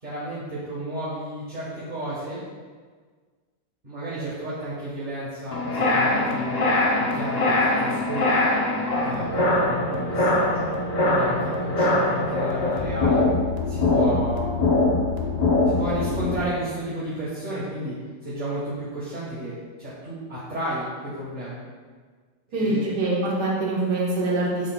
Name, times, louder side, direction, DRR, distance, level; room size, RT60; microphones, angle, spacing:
voice 1, 0.0-2.4 3.8-6.6 7.0-8.4 9.0-10.7 11.0-13.2 13.7-14.6 15.6-17.9 18.2-21.6 22.5-22.9, right 1 dB, 30° right, -9 dB, 1.3 m, -32 dB
sound 1, 5.5-16.4, left 2 dB, 60° left, 0.4 m, -22 dB
voice 2, 22.5-24.7, right 2 dB, 65° right, -5 dB, 1.8 m, -24 dB
7.9 x 6.7 x 2.3 m, 1.5 s
omnidirectional pair, 1.9 m